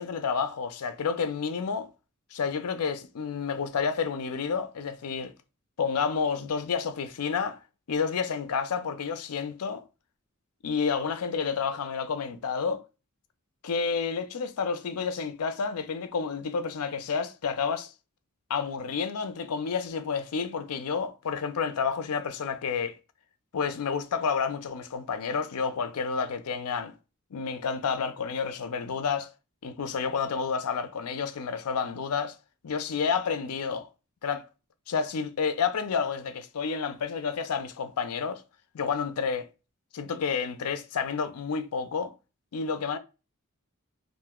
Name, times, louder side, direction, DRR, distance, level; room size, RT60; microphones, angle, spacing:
voice 1, 0.0-1.9 2.3-5.3 5.8-7.6 7.9-9.8 10.6-12.8 13.6-17.9 18.5-23.0 23.5-26.9 27.3-29.3 29.6-32.3 32.6-33.9 34.2-34.4 34.9-38.4 38.7-39.5 39.9-42.1 42.5-43.0, left 6 dB, 90° left, 0.5 m, -30 dB
2.5 x 2.1 x 3.5 m
head